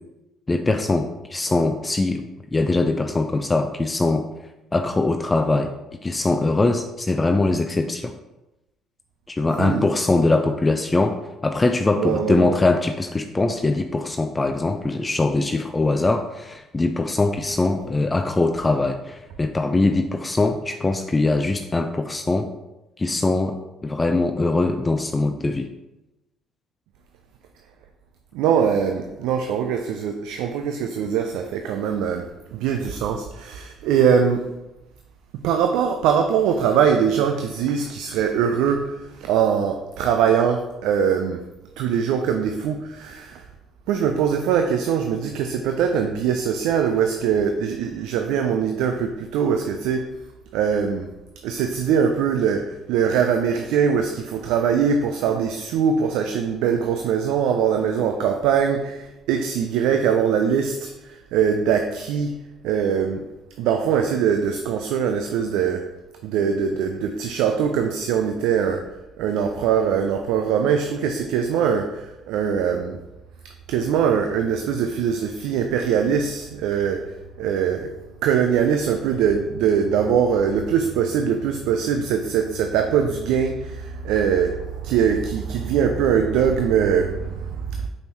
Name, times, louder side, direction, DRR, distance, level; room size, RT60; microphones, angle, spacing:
voice 1, 0.5-4.2 4.7-5.7 6.0-8.1 9.3-22.5 23.0-23.6 23.8-25.7, left 2 dB, 25° left, 6 dB, 0.5 m, -22 dB
voice 2, 12.0-12.6 28.3-34.4 35.4-41.4 41.8-43.4 43.9-50.1 50.5-51.1 51.4-62.4 62.6-63.3 63.6-65.9 66.2-68.9 69.2-73.0 73.7-77.1 77.4-77.9 78.2-87.9, right 7 dB, 70° right, 5 dB, 0.4 m, -22 dB
6.3 x 5.2 x 3.0 m, 0.97 s
hypercardioid pair, 50°, 0 cm